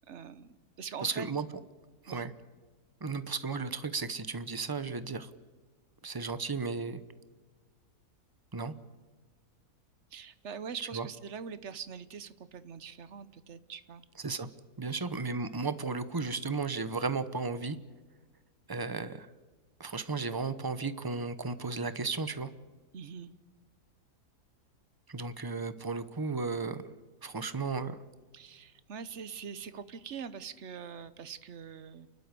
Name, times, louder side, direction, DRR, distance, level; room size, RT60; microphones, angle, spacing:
voice 1, 0.1-1.3 2.1-2.3 10.1-14.0 14.9-15.0 22.9-23.3 28.3-32.1, right 7 dB, 50° right, 14 dB, 1.1 m, -43 dB
voice 2, 1.0-1.5 2.0-2.3 3.0-5.3 6.0-7.0 8.5-8.7 10.9-11.1 14.2-14.5 14.8-17.8 18.7-19.3 19.8-22.5 25.1-26.8 27.2-28.0, right 4 dB, 20° right, 13 dB, 0.6 m, -34 dB
29.5 x 12.5 x 8.4 m, 1.3 s
omnidirectional pair, 1.7 m